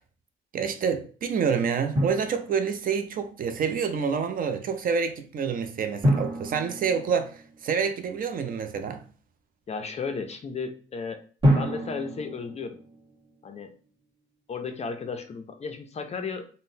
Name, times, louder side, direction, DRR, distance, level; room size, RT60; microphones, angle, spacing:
voice 1, 0.5-9.0, right 6 dB, 45° right, 0.4 m, -28 dB
Drum, 2.0-3.0 6.0-7.9 11.4-13.4, equal, 25° right, 1.4 m, -27 dB
voice 2, 9.7-11.2 11.5-12.8 13.4-13.7 14.5-16.5, left 5 dB, 30° left, 0.4 m, -34 dB
3.6 x 2.0 x 2.6 m
cardioid pair, 105°, 20 cm